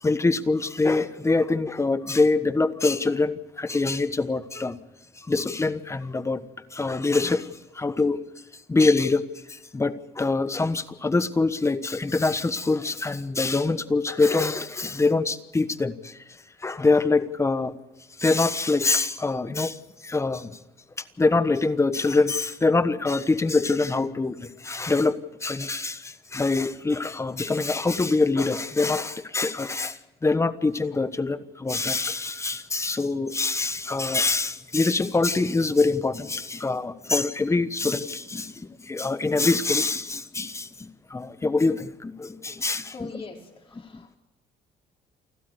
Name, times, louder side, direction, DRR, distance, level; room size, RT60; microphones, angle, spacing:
voice 1, 0.0-4.8 5.2-6.4 6.7-8.2 8.7-16.2 16.6-17.7 18.2-20.6 21.2-43.1 43.9-44.0, left 3 dB, 15° left, 13 dB, 1.2 m, -24 dB
voice 2, 42.9-44.2, left 3 dB, 35° left, 1 dB, 4.8 m, -42 dB
29.0 x 12.5 x 8.0 m, 1.1 s
cardioid pair, 110°, 17 cm